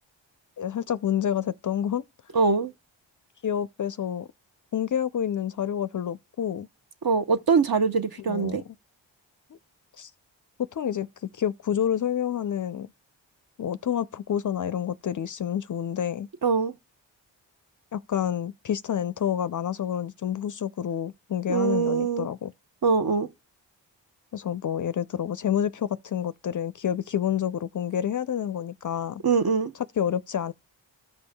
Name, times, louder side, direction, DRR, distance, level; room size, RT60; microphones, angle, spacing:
voice 1, 0.6-2.0 3.4-4.3 4.7-6.7 8.3-8.6 10.0-10.1 10.7-11.1 11.3-12.9 13.6-16.3 17.9-22.5 24.3-29.2 30.0-30.5, left 9 dB, 45° left, 0.4 m, -28 dB
voice 2, 2.3-2.7 7.0-8.6 16.4-16.7 21.5-22.3 22.8-23.3 29.2-29.7, right 5 dB, 50° right, 0.9 m, -23 dB
15.0 x 5.2 x 2.2 m
cardioid pair, 40°, 47 cm